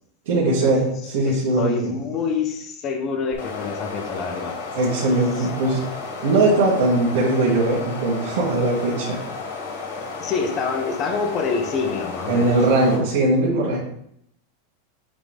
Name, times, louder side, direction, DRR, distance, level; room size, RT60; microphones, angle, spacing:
voice 1, 0.3-2.0 4.7-5.8 6.2-9.2 12.3-13.8, right 2 dB, 60° right, -9 dB, 2.5 m, -20 dB
voice 2, 1.2-4.6 5.4-5.5 10.2-12.6, left 5 dB, 30° left, 5 dB, 1.0 m, -26 dB
sound 1, 3.3-13.0, left 4 dB, 80° left, 2.1 m, -33 dB
9.4 x 3.9 x 3.5 m, 0.71 s
supercardioid pair, 165°, 0 cm